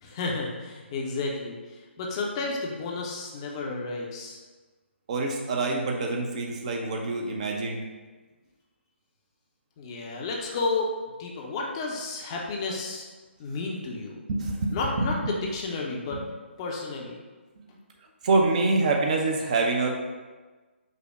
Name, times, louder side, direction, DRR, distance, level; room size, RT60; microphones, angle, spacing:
voice 1, 0.0-4.4 9.8-10.9 11.2-13.1 13.4-14.2 14.7-16.2 16.6-17.2, left 3 dB, 25° left, -1 dB, 0.6 m, -32 dB
voice 2, 5.1-7.8 14.4-15.3 16.1-16.2 17.6-17.7 18.2-19.9, right 3 dB, 35° right, 1 dB, 0.5 m, -26 dB
5.4 x 2.1 x 4.7 m, 1.3 s
figure-of-eight pair, 140°, 7 cm